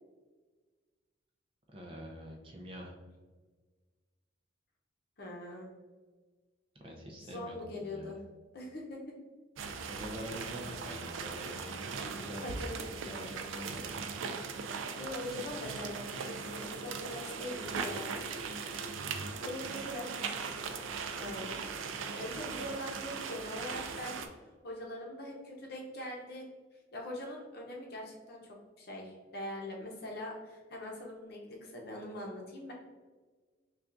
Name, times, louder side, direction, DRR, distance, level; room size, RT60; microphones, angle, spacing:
voice 1, 1.7-2.9 6.8-8.2 9.9-12.5 12.9-14.0, equal, 30° right, 0 dB, 0.5 m, -45 dB
voice 2, 5.2-5.7 7.2-8.2 8.5-9.0 12.4-12.9 15.0-18.1 19.4-20.6 21.2-21.6 22.1-24.2 24.6-26.5 26.9-32.7, left 1 dB, 55° left, -1 dB, 0.7 m, -42 dB
sound 1, 9.6-24.3, right 5 dB, 90° right, 0.4 m, -39 dB
5.7 x 2.3 x 2.5 m, 1.4 s
head